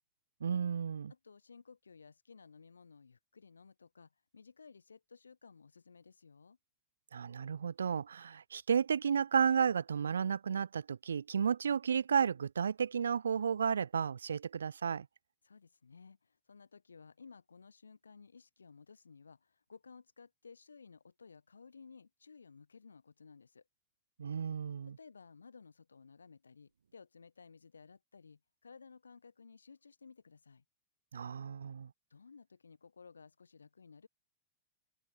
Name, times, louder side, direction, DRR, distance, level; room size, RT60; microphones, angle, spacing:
voice 1, 0.4-1.1 7.1-15.1 24.2-25.0 31.1-31.9, right 7 dB, 70° right, 1.9 m, -32 dB
voice 2, 1.1-6.6 15.4-23.6 24.9-30.6 32.1-34.1, left 5 dB, 75° left, 8.0 m, -57 dB
open air
figure-of-eight pair, 90°, 0 cm